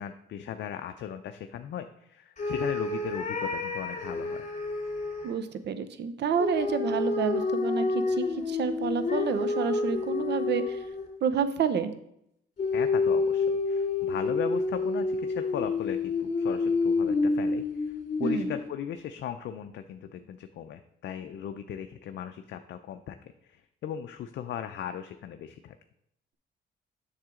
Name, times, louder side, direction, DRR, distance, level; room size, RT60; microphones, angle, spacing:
voice 1, 0.0-4.5 12.7-25.8, left 9 dB, 65° left, 7 dB, 0.5 m, -38 dB
sound 1, 2.4-5.3 6.4-11.2 12.6-18.7, left 3 dB, 40° left, 2.7 m, -29 dB
voice 2, 5.2-10.8 11.2-11.9 18.2-18.5, right 6 dB, 60° right, 11 dB, 0.8 m, -29 dB
7.6 x 6.5 x 3.7 m, 0.76 s
cardioid pair, 90°, 20 cm